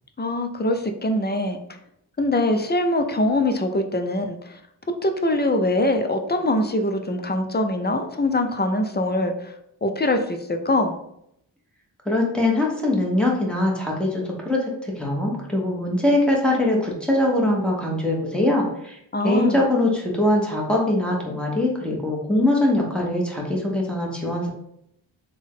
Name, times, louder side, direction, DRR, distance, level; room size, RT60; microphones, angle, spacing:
voice 1, 0.2-1.6 2.2-4.6 5.0-9.5 9.8-11.0 19.1-19.6, left 1 dB, 25° left, 6 dB, 0.4 m, -23 dB
voice 2, 12.0-19.0 19.2-24.5, left 1 dB, ahead, -3 dB, 1.0 m, -22 dB
3.4 x 2.2 x 3.6 m, 0.75 s
cardioid pair, 45°, 46 cm